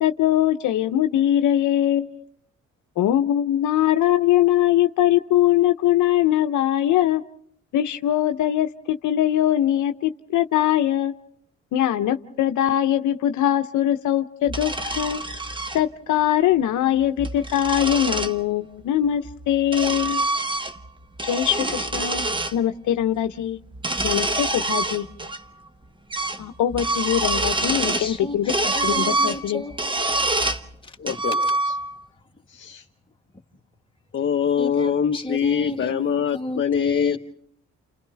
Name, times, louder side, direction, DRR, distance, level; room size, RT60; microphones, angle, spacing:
voice 1, 0.0-2.2 3.0-7.2 7.7-11.1 11.7-15.2 15.7-20.3 21.2-22.3 22.5-23.6 24.0-25.1 26.4-28.5 28.8-29.6, left 11 dB, 75° left, 0.8 m, -21 dB
sound 1, 14.5-15.8 17.0-18.4 19.3-20.9 21.2-22.5 23.7-25.4 25.7-25.8 26.1-26.4 26.7-28.1 28.5-30.6 31.1-32.0, right 2 dB, 15° right, 1.1 m, -26 dB
voice 2, 28.0-29.8 30.2-31.2 32.2-32.5 33.3-33.4 34.6-37.2, left 1 dB, 15° left, 1.9 m, -34 dB
voice 3, 31.0-31.4 32.5-32.8 34.1-37.2, left 8 dB, 40° left, 0.8 m, -23 dB
30.0 x 29.0 x 3.4 m
cardioid pair, 90°, 30 cm